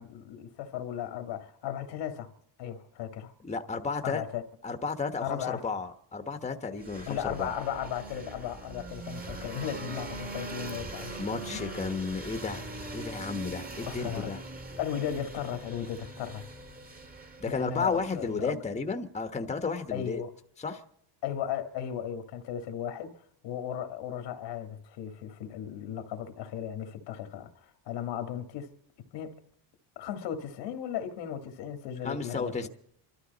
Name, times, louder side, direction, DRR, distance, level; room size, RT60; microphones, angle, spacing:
voice 1, 0.0-2.3 2.6-3.3 4.0-4.4 5.2-5.6 7.1-11.2 11.5-11.7 13.9-14.4 14.7-16.5 17.5-18.6 19.9-20.3 21.2-28.7 29.1-29.5 30.0-32.7, left 9 dB, 80° left, 1.8 m, -36 dB
voice 2, 3.4-4.2 4.6-7.5 11.2-12.6 12.9-14.4 17.4-20.2 20.6-20.8 32.0-32.7, left 4 dB, 15° left, 1.2 m, -33 dB
sound 1, 6.8-18.5, right 2 dB, 20° right, 1.8 m, -41 dB
26.0 x 13.0 x 4.0 m
cardioid pair, 115°, 42 cm